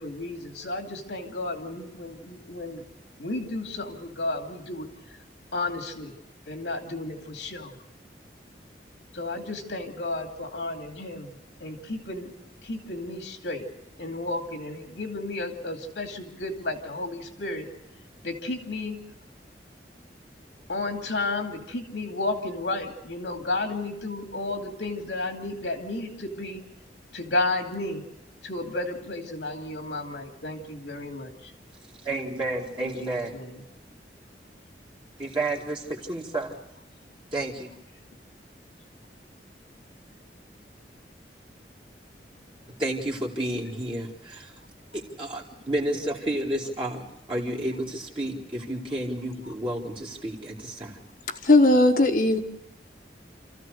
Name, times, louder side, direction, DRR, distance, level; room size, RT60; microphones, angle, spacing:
voice 1, 0.0-2.8 3.2-4.9 5.5-6.1 6.5-7.7 9.1-11.3 11.6-12.3 12.6-13.6 14.0-17.7 18.2-19.0 20.7-26.6 27.1-28.0 28.4-31.5 32.8-33.6 45.9-46.1, left 2 dB, 90° left, 3 dB, 2.5 m, -32 dB
voice 2, 32.0-33.3 35.2-36.6 37.3-37.7 42.8-44.5 44.9-47.0 47.3-51.0, right 1 dB, 30° right, -3 dB, 2.0 m, -31 dB
voice 3, 51.4-52.4, left 2 dB, 50° left, 3 dB, 1.3 m, -18 dB
28.5 x 14.5 x 6.5 m, 0.85 s
head